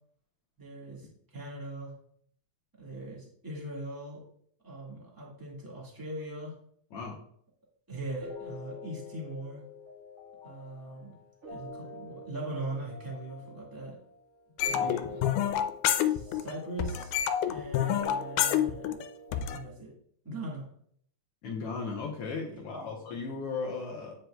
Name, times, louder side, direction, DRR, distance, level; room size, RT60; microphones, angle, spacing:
voice 1, 0.6-1.9 2.8-4.2 4.6-6.5 7.9-9.6 10.4-11.2 11.5-14.0 14.6-15.3 16.1-17.2 17.5-19.0 19.4-19.9 20.2-20.7 22.5-22.9, right 2 dB, 15° right, -4 dB, 0.7 m, -41 dB
sound 1, 8.2-19.6, left 3 dB, 40° right, 1.3 m, -46 dB
sound 2, 14.6-16.5 16.8-19.6, left 10 dB, 85° left, 2.1 m, -28 dB
voice 2, 14.6-15.0 21.4-24.2, left 4 dB, 70° left, -1 dB, 1.4 m, -36 dB
9.1 x 5.2 x 2.3 m, 0.64 s
omnidirectional pair, 3.6 m